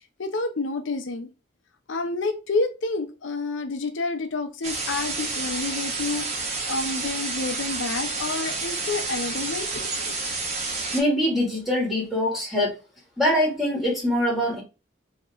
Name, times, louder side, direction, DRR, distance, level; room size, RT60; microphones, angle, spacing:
voice 1, 0.2-1.3 1.9-10.2, left 3 dB, 80° left, 0.7 m, -29 dB
sound 1, 4.6-11.0, right 3 dB, 35° right, 1.0 m, -30 dB
voice 2, 10.9-12.8 13.2-14.6, left 1 dB, ahead, 2.0 m, -23 dB
5.3 x 2.9 x 2.5 m
head